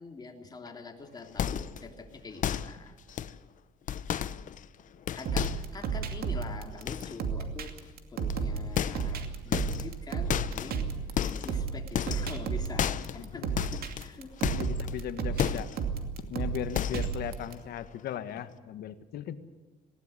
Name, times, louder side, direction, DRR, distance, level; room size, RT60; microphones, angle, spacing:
voice 1, 0.0-3.0 5.1-7.8 8.1-10.9 11.2-14.5, left 4 dB, 25° left, 3 dB, 3.1 m, -44 dB
sound 1, 1.4-1.9 2.4-2.8 3.1-3.4 3.9-4.8 5.1-5.8 6.9-7.2 8.3-8.4 8.8-9.2 9.5-10.0 10.3-10.8 11.2-11.6 11.9-12.4 12.8-13.3 13.6-15.0 15.4-15.8 16.2-16.3 16.7-17.2 17.5-17.8 18.1-18.2, left 9 dB, 50° left, 0.9 m, -32 dB
sound 2, 5.3-17.5, right 6 dB, 65° right, 2.5 m, -33 dB
voice 2, 12.9-13.5 14.5-15.7 16.2-19.4, left 10 dB, 70° left, 11 dB, 1.5 m, -38 dB
19.5 x 17.5 x 9.8 m, 1.3 s
cardioid pair, 110°, 17 cm